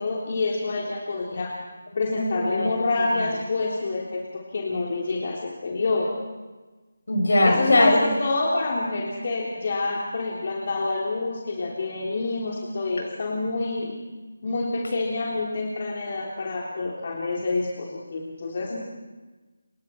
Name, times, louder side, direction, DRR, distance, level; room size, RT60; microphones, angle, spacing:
voice 1, 0.0-1.5 2.0-6.1 7.4-13.9 14.4-18.7, left 3 dB, 45° left, -2 dB, 3.4 m, -27 dB
voice 2, 2.2-2.7 3.1-3.2 7.1-8.1 18.7-18.8, left 1 dB, 70° left, 2 dB, 7.1 m, -20 dB
28.0 x 23.0 x 4.6 m, 1.2 s
figure-of-eight pair, 160°, 0 cm